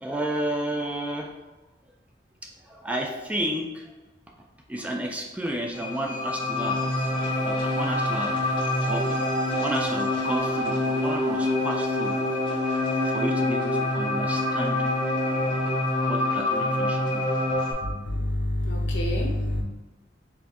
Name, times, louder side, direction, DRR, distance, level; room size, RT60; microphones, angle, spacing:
voice 1, 0.0-1.3 2.4-3.8 4.7-7.1 7.4-8.3 8.9-9.1 9.6-12.1 13.1-14.8 16.1-17.3, right 1 dB, 10° right, 1 dB, 0.3 m, -32 dB
sound 1, 5.7-17.7, left 1 dB, 25° left, 1.4 m, -26 dB
voice 2, 17.8-19.6, left 1 dB, 80° left, 2 dB, 0.8 m, -27 dB
4.3 x 3.2 x 2.9 m, 1.1 s
head